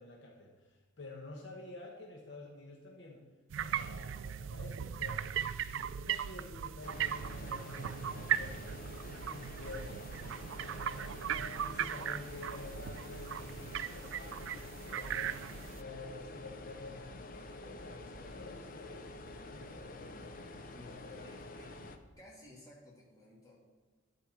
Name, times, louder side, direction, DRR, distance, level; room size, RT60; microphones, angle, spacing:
voice 1, 0.0-3.2 3.6-5.3 5.6-8.7 9.0-10.0 10.6-15.3 15.7-20.4 20.7-21.7, left 2 dB, 60° left, 0 dB, 1.1 m, -50 dB
sound 1, 3.5-15.8, right 9 dB, 70° right, 0.3 m, -38 dB
sound 2, 6.8-22.0, left 2 dB, 45° left, 0.6 m, -48 dB
sound 3, 7.5-22.1, equal, 15° right, 3.1 m, -59 dB
voice 2, 20.7-21.8 22.2-23.6, left 1 dB, 15° left, -5 dB, 2.3 m, -56 dB
11.5 x 4.4 x 6.6 m, 1.3 s
head